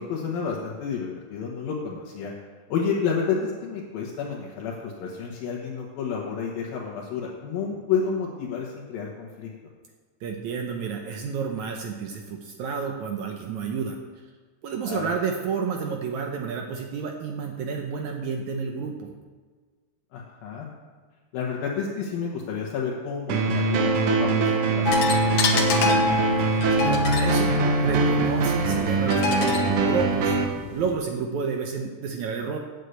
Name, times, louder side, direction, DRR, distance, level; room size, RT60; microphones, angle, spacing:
voice 1, 0.0-2.3 2.7-9.5 14.8-15.1 20.1-20.7 21.3-24.9 25.2-26.0, left 6 dB, 80° left, -2 dB, 3.1 m, -30 dB
voice 2, 10.2-14.0 14.6-19.1 26.5-27.5 27.8-32.6, right 6 dB, 70° right, 2 dB, 1.9 m, -30 dB
sound 1, 23.3-30.4, right 3 dB, 85° right, 1.2 m, -22 dB
sound 2, 24.9-30.9, left 5 dB, 65° left, 2.4 m, -28 dB
8.4 x 8.1 x 8.1 m, 1.5 s
omnidirectional pair, 4.1 m